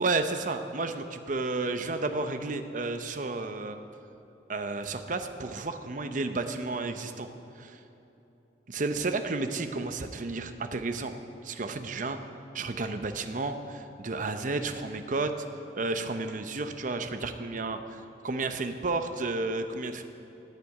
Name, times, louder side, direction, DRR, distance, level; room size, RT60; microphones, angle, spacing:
voice 1, 0.0-3.8 4.5-7.3 7.6-7.8 8.7-11.2 11.4-12.2 12.5-15.3 15.7-20.0, right 3 dB, 45° right, 8 dB, 0.8 m, -32 dB
14.5 x 6.8 x 9.5 m, 3.0 s
head